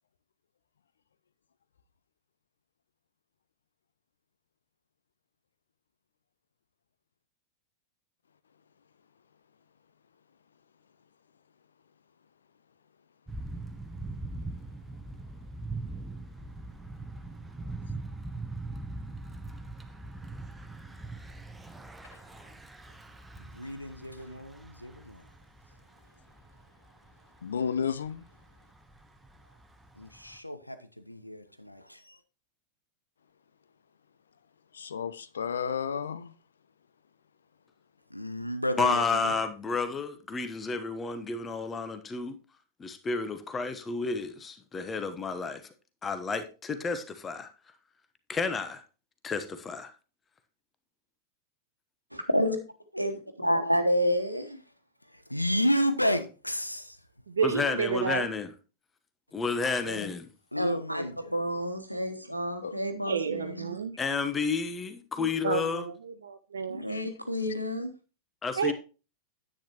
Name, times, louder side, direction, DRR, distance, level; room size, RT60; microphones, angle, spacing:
Thunder / Bicycle, 13.3-30.4, right 2 dB, 5° right, 0.9 m, -42 dB
voice 1, 23.4-25.2 30.0-32.2 38.1-39.3 55.3-57.0 60.5-61.3, equal, 85° left, 0.9 m, -31 dB
voice 2, 27.4-28.3 34.7-36.3 62.6-62.8 66.9-67.1, left 7 dB, 70° left, 0.6 m, -32 dB
voice 3, 38.8-42.4 42.8-45.6 46.0-47.5 48.3-48.8 49.2-49.9 57.4-58.5 59.3-60.3 64.0-65.8 68.4-68.7, left 4 dB, 20° left, 1.0 m, -31 dB
voice 4, 52.1-52.6 52.9-54.6 59.8-60.1 60.6-63.8 66.7-67.9, equal, 90° right, 1.2 m, -29 dB
voice 5, 57.3-58.3 63.1-63.9 65.2-66.8 68.6-68.7, right 6 dB, 70° right, 0.6 m, -30 dB
10.0 x 8.8 x 3.0 m
figure-of-eight pair, 90°, 0 cm